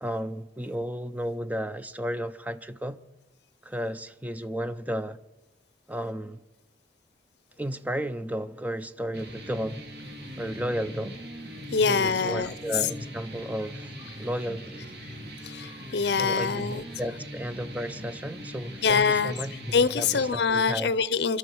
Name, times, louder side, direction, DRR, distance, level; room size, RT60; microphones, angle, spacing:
voice 1, 0.0-3.0 3.6-5.2 5.9-6.4 7.6-9.8 10.4-11.2 11.9-14.9 16.2-20.9, equal, 10° right, 0.5 m, -33 dB
sound 1, 9.1-20.3, equal, 70° right, 3.2 m, -41 dB
voice 2, 11.7-12.5 15.4-16.8 18.8-19.3 19.7-21.4, left 5 dB, 70° left, 0.6 m, -24 dB
25.0 x 12.5 x 4.6 m
head